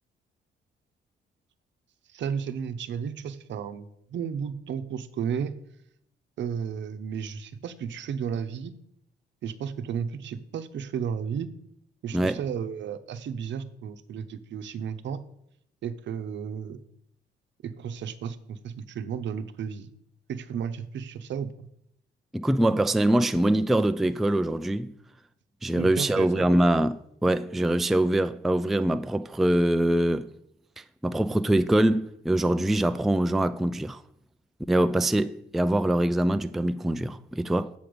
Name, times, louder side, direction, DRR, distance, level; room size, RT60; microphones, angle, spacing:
voice 1, 2.1-5.5 6.4-8.7 9.4-11.5 12.0-15.2 15.8-16.8 17.6-19.9 20.3-21.7 25.7-26.5, right 7 dB, 65° right, 0.8 m, -33 dB
voice 2, 22.3-24.9 25.6-30.3 31.0-34.0 34.7-37.7, right 1 dB, ahead, 0.3 m, -24 dB
7.7 x 7.1 x 5.1 m
cardioid pair, 90°, 20 cm